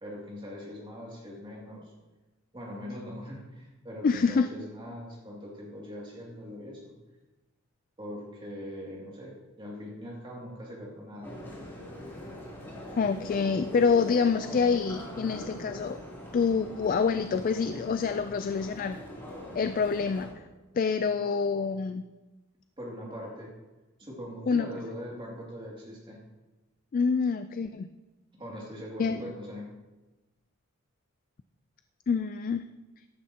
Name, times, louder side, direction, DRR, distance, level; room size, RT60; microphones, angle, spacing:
voice 1, 0.0-1.9 2.5-6.9 8.0-11.7 22.8-23.5 24.0-26.2 28.3-29.7, equal, 25° right, -3 dB, 2.4 m, -41 dB
voice 2, 4.0-4.5 13.0-16.0 16.3-19.0 19.5-20.3 20.7-22.0 24.5-24.7 26.9-27.9 29.0-29.2 32.1-32.6, left 5 dB, 40° left, 10 dB, 0.3 m, -26 dB
sound 1, 11.2-20.3, equal, 10° left, 2.9 m, -42 dB
14.5 x 11.0 x 2.9 m, 1.1 s
head